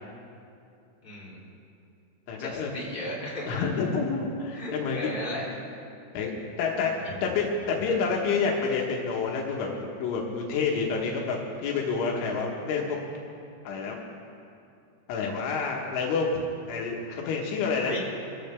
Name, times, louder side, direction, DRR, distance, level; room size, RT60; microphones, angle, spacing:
voice 1, 1.0-1.4 2.4-3.6 4.5-5.5 7.0-7.1 17.8-18.0, left 1 dB, 15° left, -6 dB, 2.2 m, -35 dB
voice 2, 2.3-2.7 3.5-5.1 6.1-6.9 7.2-13.0 13.7-14.0 15.1-16.3 16.7-17.9, left 5 dB, 85° left, -1 dB, 3.8 m, -28 dB
23.0 x 15.5 x 3.5 m, 2.6 s
omnidirectional pair, 5.5 m